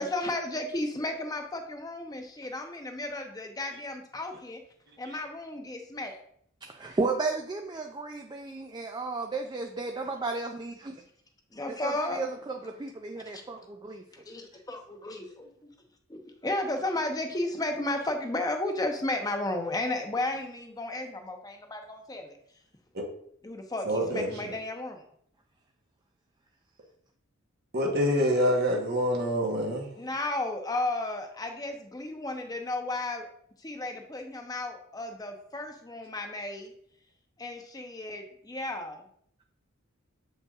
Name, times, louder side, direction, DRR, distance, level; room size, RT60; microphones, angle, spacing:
voice 1, 0.0-4.6 5.0-6.2 11.6-12.2 13.3-13.4 14.3-15.5 16.1-22.4 23.4-25.0 29.9-33.3 33.6-36.7 37.4-39.0, left 2 dB, 20° left, 4 dB, 0.7 m, -33 dB
voice 2, 6.6-10.9 11.8-14.0, right 3 dB, 20° right, 4 dB, 0.4 m, -33 dB
voice 3, 23.8-24.5 27.7-29.9, equal, 50° right, 0 dB, 1.2 m, -26 dB
7.6 x 5.4 x 2.4 m, 0.66 s
head